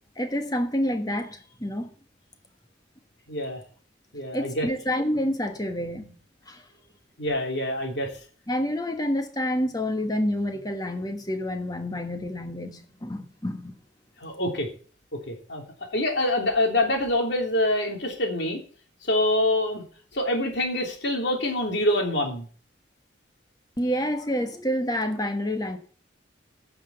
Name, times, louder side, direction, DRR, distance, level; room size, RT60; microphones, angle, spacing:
voice 1, 0.2-1.9 4.3-6.2 6.5-6.6 8.5-13.8 23.8-25.8, equal, 20° left, 1.3 m, -28 dB
voice 2, 3.3-3.6 4.1-4.7 7.2-8.1 14.2-14.7 15.1-18.6 19.0-19.8 20.1-22.5, left 1 dB, 60° left, 3.1 m, -25 dB
9.8 x 5.9 x 8.0 m
head